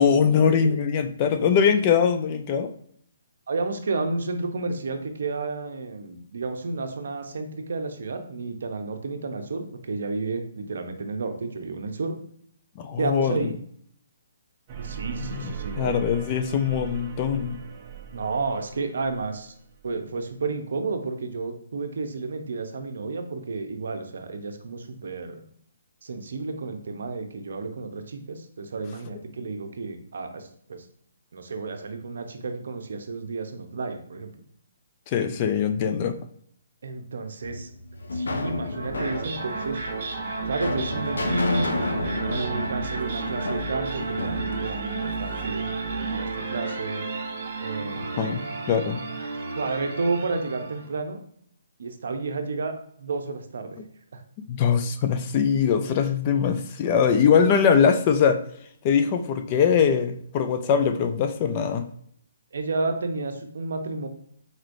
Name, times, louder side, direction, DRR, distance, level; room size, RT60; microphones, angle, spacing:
voice 1, 0.0-2.7 12.8-13.5 15.3-15.5 15.8-17.6 35.1-36.2 48.2-48.4 48.7-49.0 54.5-58.4 58.8-61.8, left 7 dB, 30° left, 8 dB, 0.3 m, -22 dB
voice 2, 3.5-12.1 13.0-13.5 14.8-16.0 18.1-19.5 19.8-25.4 26.0-30.9 31.3-34.3 36.8-37.7 38.1-39.8 40.5-41.7 42.3-45.7 45.9-47.0 47.6-48.3 49.5-51.2 51.8-53.8 54.1-54.2 62.5-64.1, right 3 dB, 70° right, 6 dB, 0.7 m, -31 dB
sound 1, 14.7-20.0, right 5 dB, 25° right, 0.6 m, -39 dB
sound 2, 37.4-45.5, left 2 dB, 90° left, 0.6 m, -31 dB
sound 3, 38.7-50.9, right 4 dB, 45° right, 1.1 m, -32 dB
4.2 x 3.1 x 2.6 m, 0.65 s
hypercardioid pair, 155°, 0 cm